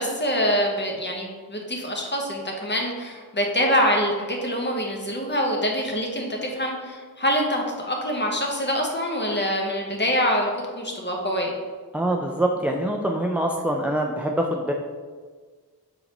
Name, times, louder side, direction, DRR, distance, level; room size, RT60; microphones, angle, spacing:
voice 1, 0.0-10.5 10.7-11.5, equal, 30° left, 0 dB, 0.9 m, -25 dB
voice 2, 11.9-14.7, right 1 dB, 5° right, 1 dB, 0.3 m, -24 dB
4.6 x 3.8 x 2.9 m, 1.5 s
cardioid pair, 65°, 38 cm